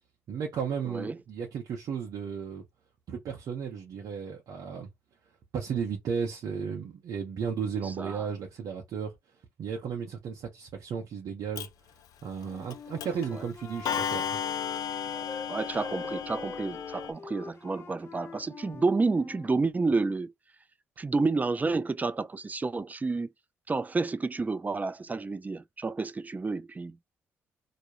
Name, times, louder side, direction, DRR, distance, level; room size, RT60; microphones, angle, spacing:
voice 1, 0.3-2.6 3.1-4.9 5.5-9.1 9.6-11.7 12.2-14.3, right 6 dB, 65° right, 0.7 m, -34 dB
voice 2, 0.8-1.2 7.8-8.3 13.3-13.4 15.1-20.3 21.0-23.3 23.7-27.0, right 3 dB, 25° right, 0.4 m, -30 dB
Clock, 11.6-11.7 12.7-12.8 13.0-13.3 13.9-17.1, left 8 dB, 65° left, 0.3 m, -34 dB
Wind instrument woodwind instrument, 12.4-15.5 15.8-19.6, left 5 dB, 40° left, 0.7 m, -43 dB
2.4 x 2.0 x 2.9 m
hypercardioid pair, 50°, 7 cm